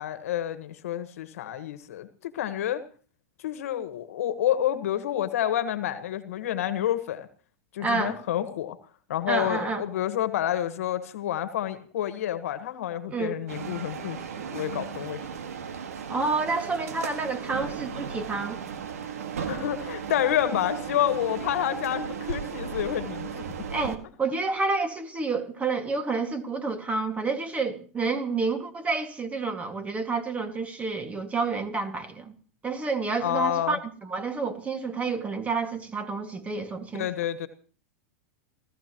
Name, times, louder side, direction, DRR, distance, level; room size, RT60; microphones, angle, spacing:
voice 1, 0.0-2.8 3.4-7.3 7.7-8.8 9.1-14.2 14.5-15.2 19.5-23.4 24.0-24.1 33.2-33.8 37.0-37.5, left 11 dB, 75° left, 1.5 m, -29 dB
voice 2, 7.8-8.2 9.3-9.8 13.1-13.4 16.1-18.6 23.7-32.3 32.6-37.1, right 4 dB, 15° right, 2.1 m, -29 dB
sound 1, 13.5-24.0, right 7 dB, 85° right, 1.8 m, -35 dB
27.0 x 14.5 x 3.1 m
hypercardioid pair, 120°, 8 cm